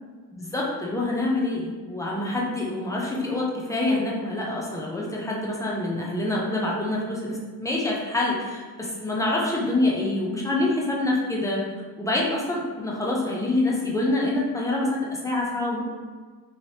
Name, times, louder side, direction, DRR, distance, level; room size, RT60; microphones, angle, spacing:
voice 1, 0.3-11.6 12.0-15.8, left 2 dB, 10° left, -4 dB, 0.4 m, -26 dB
3.2 x 2.9 x 2.8 m, 1.5 s
cardioid pair, 130°, 43 cm